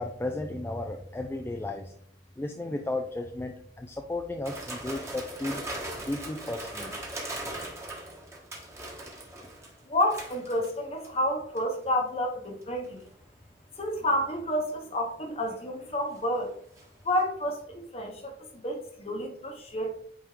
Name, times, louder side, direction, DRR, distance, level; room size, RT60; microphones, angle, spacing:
voice 1, 0.0-1.9 2.4-5.6 6.0-6.9, left 2 dB, 10° left, 4 dB, 0.3 m, -34 dB
sound 1, 4.4-11.2 11.5-11.8 12.6-13.1 15.2-16.8 17.2-17.3, right 1 dB, 15° right, 1.2 m, -40 dB
voice 2, 9.9-13.0 13.8-16.5 17.0-18.4 18.6-19.9, left 1 dB, 35° left, 3 dB, 1.0 m, -29 dB
8.7 x 3.5 x 3.2 m, 0.66 s
head